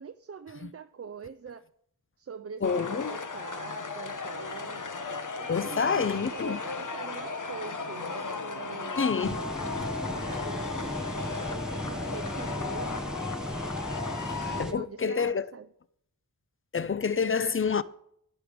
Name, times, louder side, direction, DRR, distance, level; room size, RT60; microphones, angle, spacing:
voice 1, 0.0-1.6 2.2-4.8 5.4-9.1 10.0-13.1 14.4-15.7, right 6 dB, 40° right, 0.5 m, -43 dB
sound 1, 2.6-14.6, left 4 dB, 55° left, 1.1 m, -36 dB
voice 2, 2.6-3.1 5.5-6.6 9.0-9.4 14.6-15.5 16.7-17.8, left 5 dB, 35° left, 0.6 m, -28 dB
sound 2, 9.2-14.7, equal, ahead, 1.2 m, -36 dB
11.0 x 8.5 x 5.1 m
cardioid pair, 45°, 38 cm